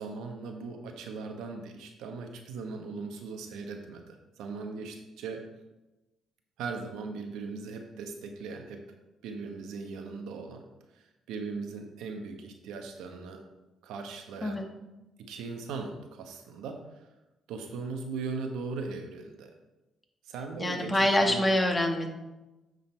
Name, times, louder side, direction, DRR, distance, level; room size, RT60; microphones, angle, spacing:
voice 1, 0.0-5.5 6.6-8.8 9.2-10.6 10.9-13.4 13.8-14.6 15.2-17.1 17.5-19.5 20.2-21.4, right 4 dB, 80° right, 4 dB, 1.0 m, -39 dB
voice 2, 20.6-22.1, left 1 dB, 20° left, 3 dB, 1.3 m, -25 dB
9.1 x 3.9 x 4.4 m, 1.0 s
supercardioid pair, 75°, 0 cm